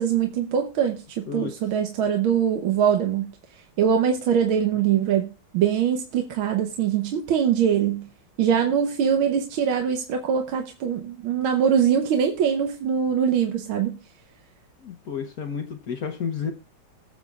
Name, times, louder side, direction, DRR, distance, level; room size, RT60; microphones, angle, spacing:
voice 1, 0.0-3.3 3.8-8.1 8.4-14.0, right 8 dB, 75° right, 1.7 m, -23 dB
voice 2, 14.8-16.5, left 6 dB, 55° left, 1.1 m, -31 dB
21.5 x 7.3 x 2.4 m
omnidirectional pair, 2.3 m